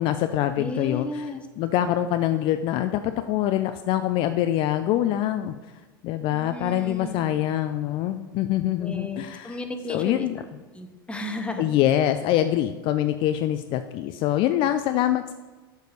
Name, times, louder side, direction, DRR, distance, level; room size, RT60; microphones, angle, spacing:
voice 1, 0.0-5.5 6.0-9.6 9.9-10.4 11.6-15.3, left 12 dB, 45° left, 9 dB, 0.4 m, -24 dB
voice 2, 0.6-1.4 6.3-7.2 8.8-10.3 10.8-11.6, left 1 dB, 10° left, 5 dB, 1.0 m, -34 dB
6.6 x 4.7 x 6.7 m, 1.2 s
hypercardioid pair, 90°, 12 cm